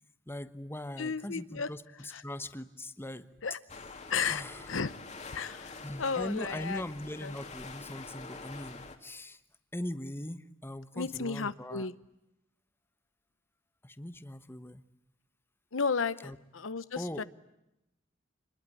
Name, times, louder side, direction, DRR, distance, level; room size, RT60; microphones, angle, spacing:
voice 1, 0.3-3.3 4.2-4.7 5.8-9.4 9.7-11.9 13.8-14.9 16.2-16.4 16.9-17.2, left 1 dB, 10° left, 12 dB, 1.2 m, -40 dB
voice 2, 1.0-1.7 2.1-2.2 3.4-3.6 4.1-4.9 5.3-6.8 7.2-7.3 10.9-11.9 15.7-17.2, left 5 dB, 75° left, 15 dB, 1.0 m, -33 dB
sound 1, 3.7-9.0, left 3 dB, 35° left, 2.7 m, -46 dB
26.5 x 21.5 x 9.8 m, 0.89 s
head